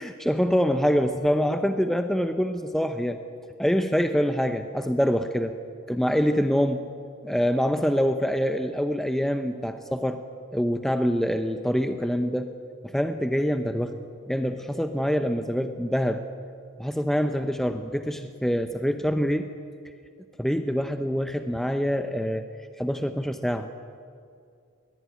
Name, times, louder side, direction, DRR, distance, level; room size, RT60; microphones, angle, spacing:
voice 1, 0.0-3.2 3.6-5.5 5.9-6.9 7.2-10.2 10.5-12.5 12.8-14.0 14.3-16.2 16.8-19.5 20.4-22.4 22.8-23.7, equal, ahead, 7 dB, 0.7 m, -25 dB
21.5 x 20.0 x 9.5 m, 2.4 s
head